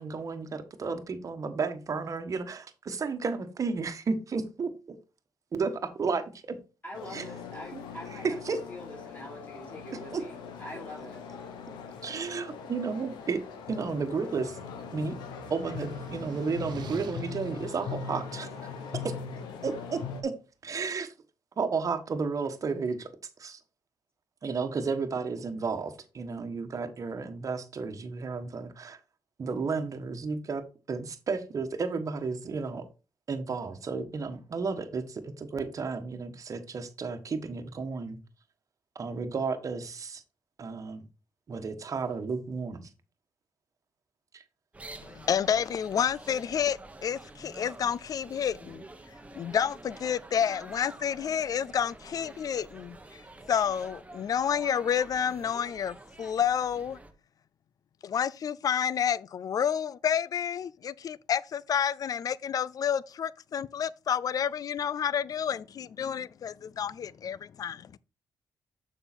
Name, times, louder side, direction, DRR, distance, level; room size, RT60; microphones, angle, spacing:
voice 1, 0.0-5.0 5.5-6.6 7.1-7.3 7.7-7.8 8.2-8.6 10.1-10.2 12.0-13.4 13.7-14.6 14.9-15.1 15.5-18.7 19.0-19.1 19.6-20.3 20.6-21.1 21.6-23.1 23.4-23.6 24.4-29.0 29.4-32.8 33.3-38.2 38.9-40.2 40.6-41.0 41.5-42.9 44.3-44.4, right 4 dB, 50° right, 1.3 m, -33 dB
voice 2, 6.8-8.4 8.7-11.4, equal, 25° left, 3.3 m, -44 dB
sound 1, 6.9-20.2, left 6 dB, 85° left, 1.3 m, -41 dB
sound 2, 13.6-19.7, right 6 dB, 70° right, 0.9 m, -47 dB
sound 3, 44.7-57.1, right 2 dB, 20° right, 1.2 m, -48 dB
voice 3, 45.0-48.8 49.3-53.0 53.5-57.0 58.0-68.0, left 8 dB, 55° left, 0.4 m, -29 dB
6.9 x 5.5 x 4.2 m
supercardioid pair, 65°, 7 cm